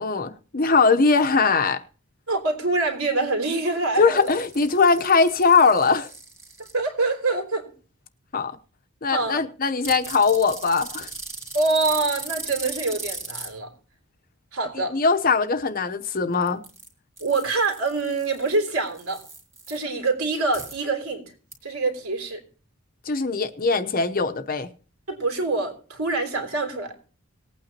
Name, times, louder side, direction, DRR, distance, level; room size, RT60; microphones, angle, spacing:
voice 1, 0.0-1.8 4.0-6.1 8.3-8.5 9.0-11.1 14.9-16.6 23.1-24.7, left 4 dB, 40° left, 0.8 m, -20 dB
voice 2, 2.3-4.3 6.7-7.7 9.1-9.4 11.5-13.7 14.5-15.0 17.2-19.2 19.7-21.2 21.6-22.4 25.1-27.0, right 3 dB, 70° right, 3.3 m, -25 dB
sound 1, 4.2-6.7 9.8-13.5 16.3-16.9 17.2-19.8 20.5-20.7 21.5-21.6, right 3 dB, 10° right, 2.5 m, -38 dB
19.5 x 8.9 x 2.9 m
head